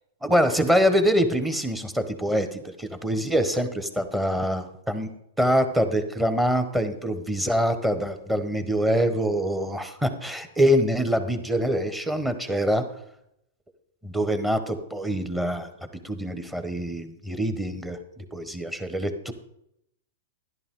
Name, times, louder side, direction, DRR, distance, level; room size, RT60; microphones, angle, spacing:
voice 1, 0.2-5.1 5.4-12.8 14.0-18.0 18.3-19.3, equal, 5° right, 8 dB, 1.3 m, -25 dB
11.5 x 11.0 x 3.8 m, 0.78 s
hypercardioid pair, 125°, 0 cm